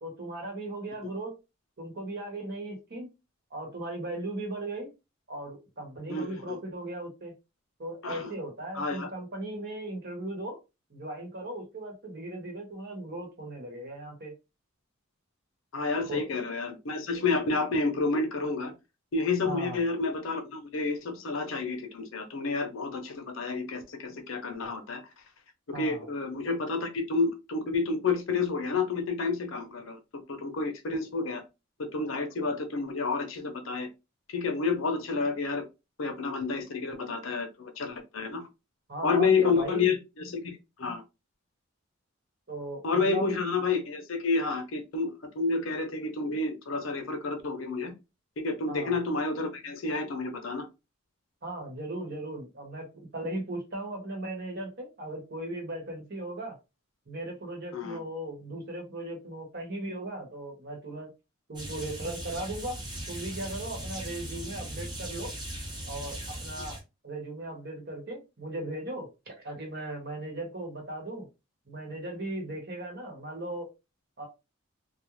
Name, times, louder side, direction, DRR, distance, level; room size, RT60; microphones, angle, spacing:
voice 1, 0.0-1.4 1.8-3.1 3.5-4.9 5.3-7.3 7.8-10.6 10.9-14.3 16.0-16.3 19.4-19.8 25.7-26.1 38.9-39.9 42.5-43.4 48.7-49.0 51.4-56.6 57.1-61.1 61.5-62.8 63.1-65.3 65.9-66.8 67.0-71.3 71.7-73.7 74.2-74.3, right 1 dB, 50° right, 1.1 m, -37 dB
voice 2, 6.1-6.6 8.0-8.3 8.7-9.1 15.7-18.7 19.1-25.0 25.7-31.4 31.8-33.9 34.3-35.7 36.0-38.4 39.0-41.0 42.8-47.9 48.4-50.7 57.7-58.0, left 4 dB, 75° left, 0.6 m, -30 dB
sound 1, 61.5-66.8, right 1 dB, 20° right, 0.8 m, -38 dB
2.4 x 2.1 x 3.0 m
head